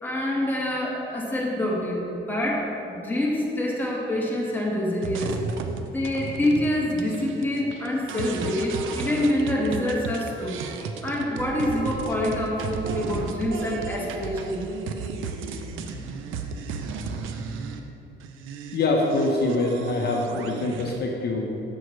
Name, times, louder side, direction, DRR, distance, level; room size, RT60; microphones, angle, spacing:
voice 1, 0.0-5.4 5.9-10.6 11.0-14.6, left 1 dB, 10° left, -3 dB, 1.4 m, -26 dB
sound 1, 5.0-17.8 18.2-21.0, right 5 dB, 85° right, 0.5 m, -34 dB
voice 2, 18.7-21.5, left 2 dB, 55° left, 0 dB, 0.8 m, -24 dB
7.5 x 6.2 x 3.1 m, 2.9 s
cardioid pair, 90°, 20 cm